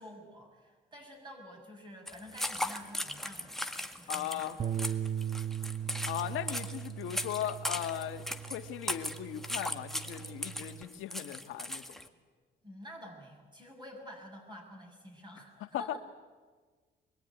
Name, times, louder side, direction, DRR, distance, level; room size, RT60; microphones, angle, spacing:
voice 1, 0.0-3.6 4.0-4.4 12.6-16.0, equal, 20° right, 0 dB, 6.6 m, -49 dB
sound 1, 2.1-12.1, left 1 dB, ahead, 1.8 m, -38 dB
voice 2, 4.1-4.6 6.0-12.0 15.6-15.9, left 11 dB, 90° left, 7 dB, 1.6 m, -38 dB
Bass guitar, 4.6-10.8, right 9 dB, 40° right, 0.8 m, -39 dB
24.5 x 22.0 x 9.7 m, 1.5 s
cardioid pair, 90°, 20 cm